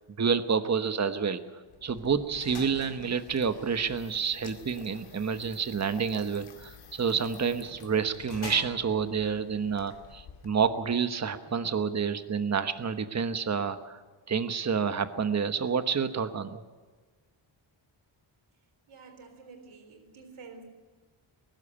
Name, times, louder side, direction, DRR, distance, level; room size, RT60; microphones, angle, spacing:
voice 1, 0.2-1.4 1.8-14.0 14.3-16.6, right 6 dB, 35° right, 10 dB, 1.2 m, -29 dB
sound 1, 1.7-11.0, left 5 dB, 85° left, 2.4 m, -48 dB
voice 2, 18.9-20.6, right 4 dB, 85° right, 6 dB, 3.9 m, -49 dB
21.5 x 12.0 x 10.0 m, 1.4 s
wide cardioid pair, 130°, 48 cm